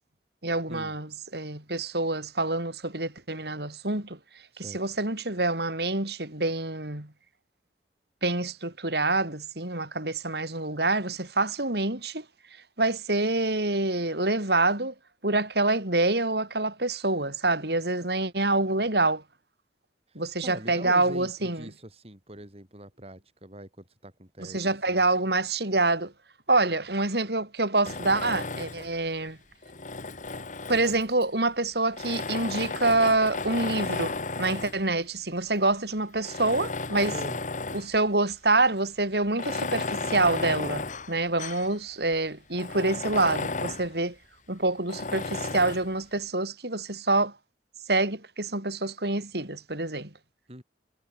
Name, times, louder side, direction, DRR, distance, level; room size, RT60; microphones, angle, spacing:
voice 1, 0.4-4.2 4.6-7.1 8.2-12.2 12.8-14.9 15.2-19.2 20.1-21.7 24.4-26.1 26.5-29.4 30.7-37.1 37.7-44.1 44.5-47.3 47.9-50.1, right 2 dB, 60° right, 5.1 m, -26 dB
voice 2, 20.4-25.1 37.1-37.4 50.5-50.6, right 1 dB, 35° right, 7.8 m, -43 dB
Tools, 27.8-29.0 29.6-31.2 31.9-34.8 35.5-35.6 36.2-38.0 38.3-38.4 39.3-41.7 42.1-42.2 42.5-43.9 44.9-45.9, left 3 dB, 45° left, 1.8 m, -33 dB
head